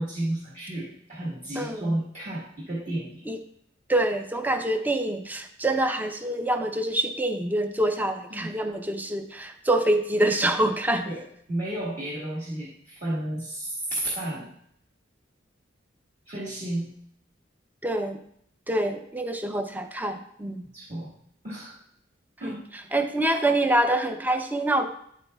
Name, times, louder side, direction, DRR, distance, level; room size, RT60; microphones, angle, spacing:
voice 1, 0.0-3.2 8.3-8.5 11.1-14.5 16.2-16.9 20.7-21.1 21.4-21.8 22.4-22.6, right 1 dB, 40° right, -7 dB, 1.5 m, -32 dB
voice 2, 1.6-1.9 3.3-3.4 3.9-11.1 17.8-18.2 18.7-20.6 22.4-22.6 22.9-24.9, right 1 dB, 10° right, 6 dB, 0.5 m, -26 dB
9.8 x 8.3 x 2.3 m, 0.69 s
head